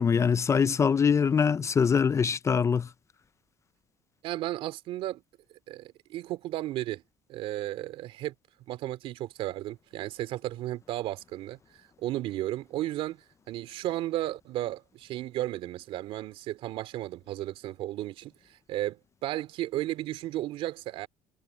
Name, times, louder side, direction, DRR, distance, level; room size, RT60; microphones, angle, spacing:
voice 1, 0.0-2.9, left 6 dB, 30° left, 0.6 m, -23 dB
voice 2, 4.2-5.2 5.7-7.0 7.3-8.3 8.7-11.6 12.0-21.1, right 15 dB, 70° right, 2.9 m, -34 dB
supercardioid pair, 90°, 10 cm